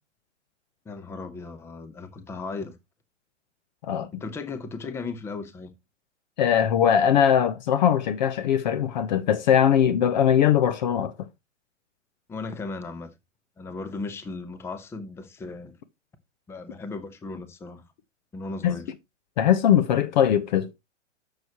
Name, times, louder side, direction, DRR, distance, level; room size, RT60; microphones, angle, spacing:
voice 1, 0.9-2.8 4.1-5.7 12.3-13.1 13.6-15.7 16.5-17.8 18.3-18.9, left 3 dB, 5° left, 0.7 m, -36 dB
voice 2, 3.8-4.2 6.4-11.1 18.6-18.8 19.4-20.7, left 9 dB, 35° left, 0.7 m, -21 dB
10.5 x 6.7 x 2.9 m
figure-of-eight pair, 110°, 37 cm